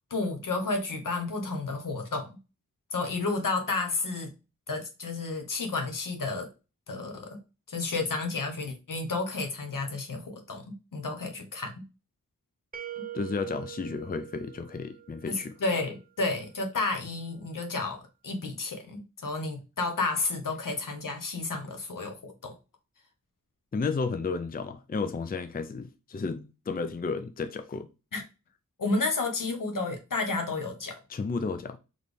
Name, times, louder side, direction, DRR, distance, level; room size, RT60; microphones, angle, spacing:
voice 1, 0.1-2.4 2.9-4.3 4.7-6.5 6.9-7.4 7.7-11.8 13.0-13.1 15.2-22.5 28.1-28.2 28.8-31.0, left 3 dB, 75° left, 1.1 m, -31 dB
sound 1, 12.7-15.6, right 11 dB, 30° right, 0.4 m, -43 dB
voice 2, 13.1-15.5 23.7-27.9 31.1-31.8, left 4 dB, 30° left, 0.4 m, -32 dB
4.1 x 3.2 x 3.4 m
wide cardioid pair, 95°, 33 cm